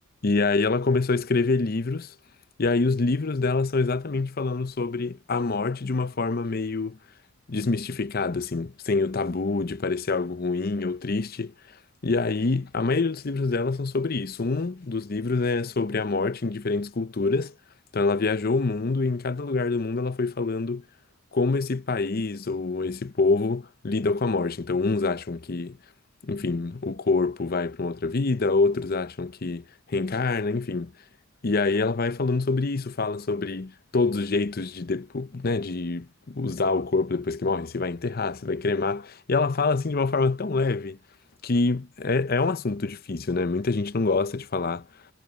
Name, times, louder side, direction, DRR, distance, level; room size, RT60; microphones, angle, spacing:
voice 1, 0.2-2.1 2.6-7.0 7.5-11.5 12.0-17.5 17.9-20.8 21.3-25.8 26.2-30.9 31.4-41.0 41.4-44.8, left 3 dB, 45° left, 0.7 m, -26 dB
head